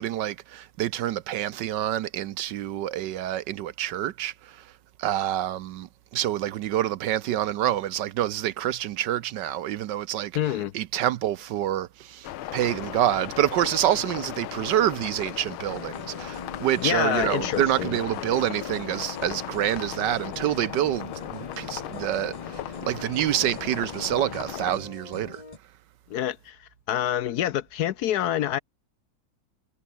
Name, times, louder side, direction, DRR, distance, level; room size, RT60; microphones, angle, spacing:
voice 1, 0.0-4.6 5.0-5.9 6.1-10.3 10.7-22.6 22.9-25.4, right 12 dB, 70° right, 1.2 m, -27 dB
voice 2, 10.3-10.7 16.8-18.0 26.1-28.6, left 11 dB, 70° left, 1.0 m, -27 dB
sound 1, 12.2-24.8, left 13 dB, 90° left, 1.7 m, -37 dB
sound 2, 15.7-25.6, left 2 dB, 20° left, 1.7 m, -42 dB
omnidirectional pair, 2.2 m